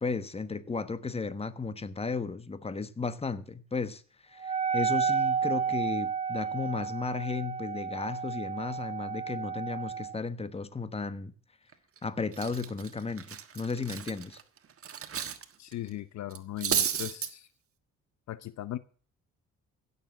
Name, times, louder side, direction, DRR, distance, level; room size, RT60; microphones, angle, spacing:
voice 1, 0.0-11.3 12.0-14.4, left 4 dB, 20° left, 1.2 m, -34 dB
Wind instrument woodwind instrument, 4.4-10.2, right 6 dB, 20° right, 1.1 m, -31 dB
Cutlery silverware, 11.7-12.0 12.3-15.4 15.7-15.9 16.3-17.3, right 8 dB, 50° right, 1.5 m, -33 dB
voice 2, 15.6-17.5 18.3-18.8, left 13 dB, 65° left, 0.8 m, -38 dB
16.0 x 7.0 x 7.4 m
cardioid pair, 90°, 30 cm